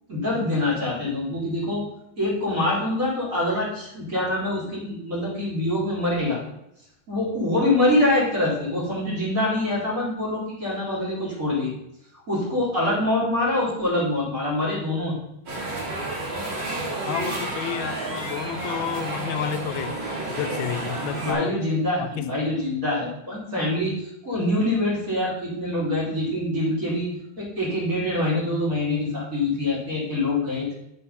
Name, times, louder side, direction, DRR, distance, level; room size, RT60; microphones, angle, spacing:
voice 1, 0.1-1.8 2.2-6.4 7.1-11.7 12.3-15.1 21.2-27.1 27.4-30.7, left 1 dB, 40° right, -6 dB, 4.0 m, -25 dB
sound 1, 15.5-21.3, right 2 dB, 65° right, 3.0 m, -30 dB
voice 2, 17.1-19.9 20.3-21.6 22.0-22.3, left 10 dB, 90° left, 11 dB, 1.4 m, -30 dB
6.9 x 6.8 x 5.6 m, 0.82 s
omnidirectional pair, 2.2 m